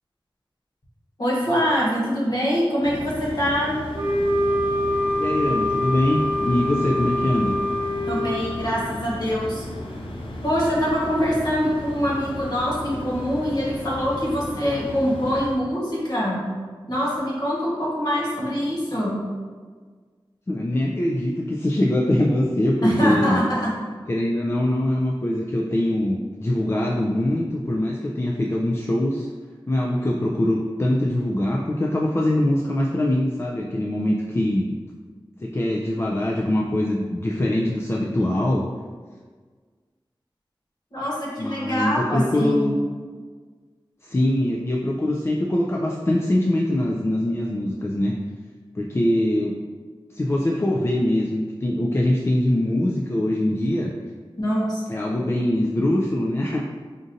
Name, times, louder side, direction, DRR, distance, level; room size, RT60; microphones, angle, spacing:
voice 1, 1.2-3.7 8.1-9.6 10.4-16.4 16.9-19.2 22.8-23.7 40.9-42.7 54.4-54.8, equal, 50° left, -6 dB, 1.3 m, -24 dB
sound 1, 2.8-15.5, left 1 dB, 85° left, 0.5 m, -35 dB
Wind instrument woodwind instrument, 3.9-8.4, left 1 dB, 40° right, 0.5 m, -24 dB
voice 2, 5.2-7.6 20.5-23.4 24.1-29.3 29.7-34.8 35.4-38.7 41.4-42.7 44.0-48.1 48.7-49.5 50.1-53.9 54.9-56.6, left 1 dB, 30° left, -2 dB, 0.3 m, -23 dB
5.0 x 2.5 x 2.6 m, 1.5 s
wide cardioid pair, 55°, 9 cm